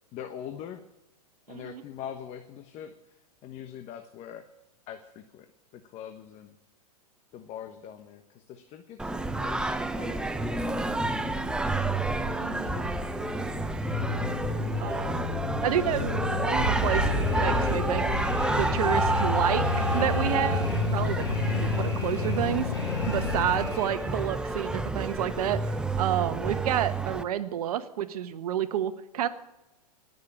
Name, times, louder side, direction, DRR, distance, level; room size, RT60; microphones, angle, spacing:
voice 1, 0.1-0.8 1.5-2.9 3.4-4.5 4.9-5.5 5.7-6.6 7.3-10.6 11.2-11.5 11.8-12.9 14.5-15.2, left 9 dB, 35° left, 7 dB, 1.2 m, -43 dB
voice 2, 1.5-1.8 12.4-12.8 14.8-15.3 15.6-17.1 17.4-18.1 18.3-21.3 21.6-22.7 23.1-29.3, right 10 dB, 65° right, 11 dB, 1.3 m, -30 dB
Singing, 9.0-27.2, right 2 dB, 5° right, 0.6 m, -29 dB
sound 1, 10.7-24.7, left 8 dB, 85° left, 1.0 m, -33 dB
Alarm, 16.6-24.3, right 2 dB, 15° left, 4.3 m, -35 dB
19.0 x 6.8 x 8.7 m, 1.0 s
hypercardioid pair, 125°, 20 cm